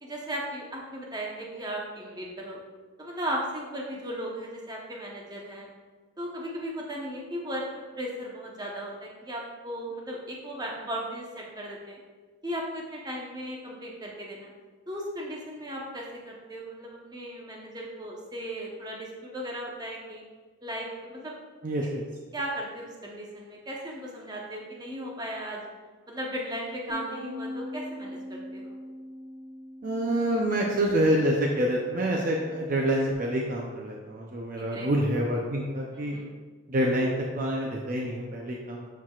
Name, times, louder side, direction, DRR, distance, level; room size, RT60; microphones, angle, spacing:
voice 1, 0.0-2.6 3.0-5.7 6.2-12.0 12.4-14.5 14.9-20.2 20.6-21.4 22.3-25.7 26.1-28.7 34.6-34.9 35.9-36.3, equal, 20° right, -2 dB, 1.0 m, -36 dB
voice 2, 21.6-22.0 29.8-36.2 36.7-38.8, right 1 dB, 40° right, -1 dB, 0.6 m, -27 dB
Bass guitar, 26.9-33.1, left 1 dB, 80° right, 1.5 m, -42 dB
11.5 x 4.6 x 2.4 m, 1.4 s
head